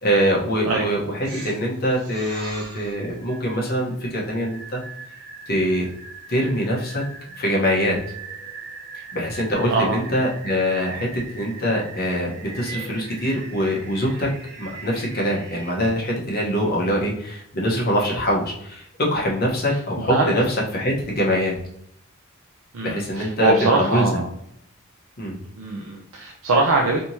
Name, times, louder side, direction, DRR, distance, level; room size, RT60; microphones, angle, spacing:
voice 1, 0.0-4.8 5.5-5.9 6.3-7.0 7.4-8.0 9.1-11.1 11.3-21.6 22.8-24.2 25.2-25.4, equal, 50° left, -2 dB, 1.0 m, -23 dB
sound 1, 1.2-15.7, right 4 dB, 55° right, 1.4 m, -40 dB
voice 2, 9.7-10.0 16.9-17.2 19.7-19.8 20.1-20.3 22.7-24.3 25.5-27.0, right 2 dB, 80° right, 0 dB, 0.5 m, -22 dB
3.3 x 2.9 x 2.7 m, 0.72 s
head